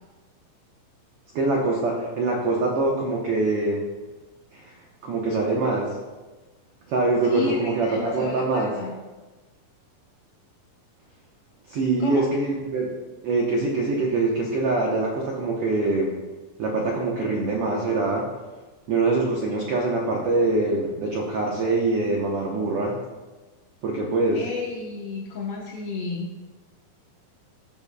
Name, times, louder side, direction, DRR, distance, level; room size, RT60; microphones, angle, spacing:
voice 1, 1.3-3.8 4.5-4.7 5.0-6.0 6.9-8.8 11.7-12.9 13.2-16.1 16.6-18.3 18.9-23.0 23.8-24.5, right 3 dB, 85° right, -1 dB, 1.3 m, -24 dB
voice 2, 7.2-8.9 12.0-12.2 24.3-26.3, left 4 dB, 85° left, -2 dB, 1.2 m, -32 dB
14.5 x 7.3 x 2.2 m, 1.2 s
omnidirectional pair, 4.0 m